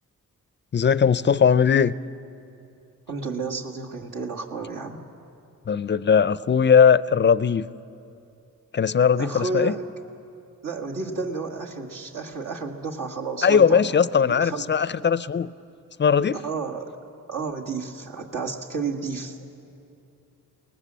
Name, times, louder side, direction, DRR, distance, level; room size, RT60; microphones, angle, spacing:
voice 1, 0.7-1.9 5.7-7.7 8.7-9.7 13.4-15.5 16.0-16.4, left 6 dB, 35° left, 18 dB, 0.5 m, -19 dB
voice 2, 3.1-5.0 9.2-9.8 10.6-14.6 16.3-16.9 17.3-19.4, right 4 dB, 70° right, 1 dB, 1.7 m, -31 dB
21.5 x 18.5 x 7.5 m, 2.7 s
cardioid pair, 60°, 34 cm